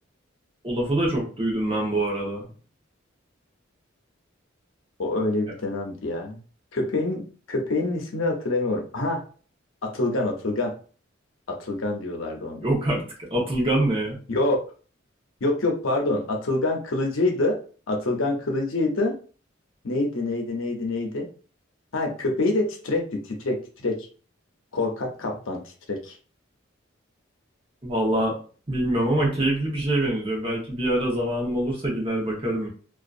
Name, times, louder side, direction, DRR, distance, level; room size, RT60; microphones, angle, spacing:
voice 1, 0.6-2.5 12.6-13.0 13.3-14.2 27.8-28.4 28.7-32.7, right 1 dB, 30° right, -2 dB, 0.9 m, -24 dB
voice 2, 5.0-6.4 6.7-9.2 9.8-10.7 11.5-12.7 14.3-14.6 15.4-17.6 17.9-19.1 19.8-21.3 21.9-24.1 24.7-26.1, left 2 dB, 80° left, 2 dB, 0.7 m, -26 dB
2.6 x 2.3 x 2.4 m, 0.39 s
head